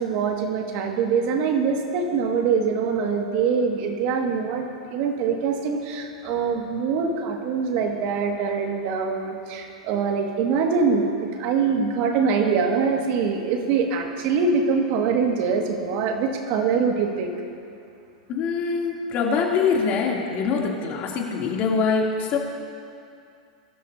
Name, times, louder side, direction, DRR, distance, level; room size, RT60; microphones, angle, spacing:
voice 1, 0.0-17.3, right 5 dB, 50° right, 2 dB, 2.0 m, -24 dB
voice 2, 18.3-22.4, left 5 dB, 40° left, -2 dB, 3.0 m, -24 dB
23.5 x 13.0 x 2.8 m, 2.5 s
hypercardioid pair, 110°, 4 cm